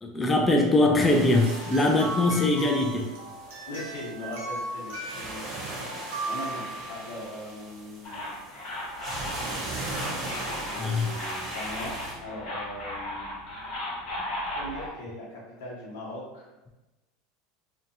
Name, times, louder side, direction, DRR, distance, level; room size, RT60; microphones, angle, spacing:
voice 1, 0.0-3.1 10.8-11.1, left 2 dB, 15° left, 2 dB, 0.3 m, -22 dB
sound 1, 1.0-12.1, right 2 dB, 35° right, 0.8 m, -39 dB
sound 2, 1.4-7.4 9.7-9.8 10.8-10.9, right 2 dB, 90° right, 0.9 m, -37 dB
voice 2, 3.7-5.4 6.2-8.3 10.6-13.3 14.5-16.5, left 1 dB, 80° left, -5 dB, 1.0 m, -39 dB
sound 3, 8.0-14.9, left 1 dB, 55° left, 1.0 m, -36 dB
2.6 x 2.3 x 2.6 m, 1.0 s
supercardioid pair, 120°, 0 cm